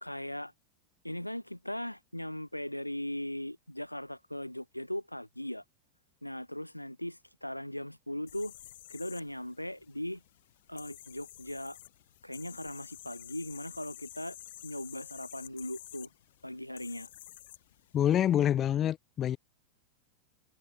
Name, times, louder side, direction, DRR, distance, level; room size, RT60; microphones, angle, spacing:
voice 1, 0.0-0.5 1.0-5.6 6.2-8.5 8.9-10.2 10.7-11.8 12.2-14.4 14.6-16.1 16.4-17.1, left 1 dB, 90° left, 1.2 m, -39 dB
sound 1, 8.3-18.3, left 15 dB, 55° left, 3.2 m, -51 dB
voice 2, 17.9-19.4, left 10 dB, 30° left, 0.4 m, -26 dB
figure-of-eight pair, 90°, 0 cm